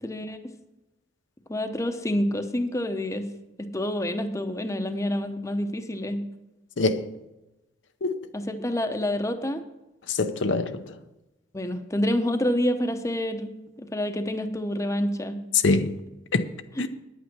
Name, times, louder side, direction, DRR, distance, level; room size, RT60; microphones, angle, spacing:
voice 1, 0.0-0.4 1.5-3.3 3.6-6.2 8.3-9.6 11.5-13.5 13.8-15.4, left 1 dB, 15° left, 0.8 m, -27 dB
voice 2, 6.8-7.1 8.0-8.2 10.1-10.8 15.5-16.0 16.3-16.5 16.8-16.9, left 3 dB, 80° left, 0.8 m, -24 dB
10.0 x 8.6 x 6.1 m
head